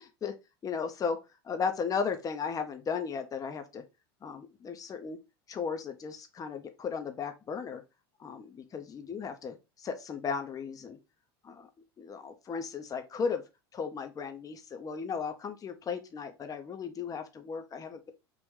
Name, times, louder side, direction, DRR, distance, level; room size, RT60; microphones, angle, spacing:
voice 1, 0.6-1.2 1.4-3.8 4.2-5.2 5.5-7.8 8.2-11.0 11.4-11.7 12.0-13.4 13.7-18.1, left 6 dB, 25° left, 0.7 m, -35 dB
3.1 x 2.5 x 3.6 m
hypercardioid pair, 90°, 13 cm